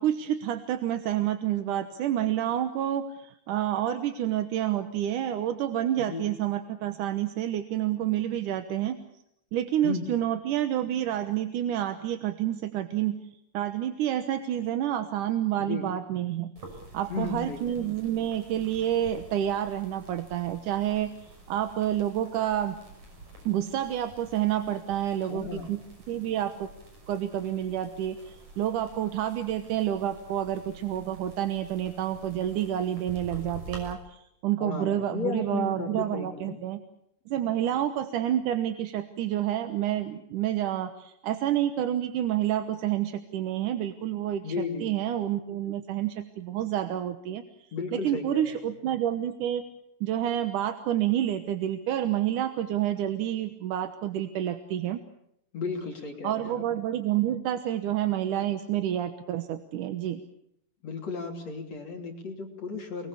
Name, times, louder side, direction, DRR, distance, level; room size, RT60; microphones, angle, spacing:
voice 1, 0.0-9.0 9.5-13.2 13.5-16.5 16.9-22.8 23.5-25.8 26.1-26.7 27.1-36.8 37.3-47.4 47.9-49.6 50.0-55.0 56.2-60.2, right 11 dB, 65° right, 8 dB, 2.4 m, -29 dB
voice 2, 6.0-6.3 9.8-10.1 15.6-15.9 17.1-17.8 25.2-25.7 34.6-36.6 44.4-44.9 47.7-48.6 55.5-56.7 60.8-63.1, left 4 dB, 45° left, 2 dB, 4.0 m, -34 dB
sound 1, 16.6-33.9, right 2 dB, 45° right, 7.2 m, -48 dB
29.0 x 22.0 x 7.0 m, 0.78 s
omnidirectional pair, 4.4 m